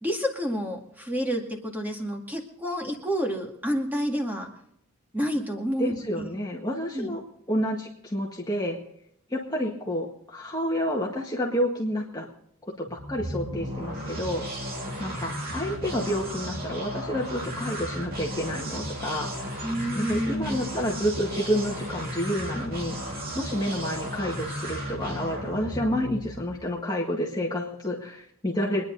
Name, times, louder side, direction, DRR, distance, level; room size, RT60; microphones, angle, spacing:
voice 1, 0.0-4.5 5.1-6.3 6.9-7.2 19.6-20.7, equal, 10° right, 2 dB, 2.1 m, -29 dB
voice 2, 5.8-7.2 7.5-8.8 9.3-12.3 12.8-14.4 15.0-19.7 19.9-28.8, equal, 20° left, -2 dB, 1.7 m, -29 dB
sound 1, 12.9-26.6, equal, 40° right, 2.7 m, -34 dB
24.5 x 10.5 x 4.0 m, 0.71 s
head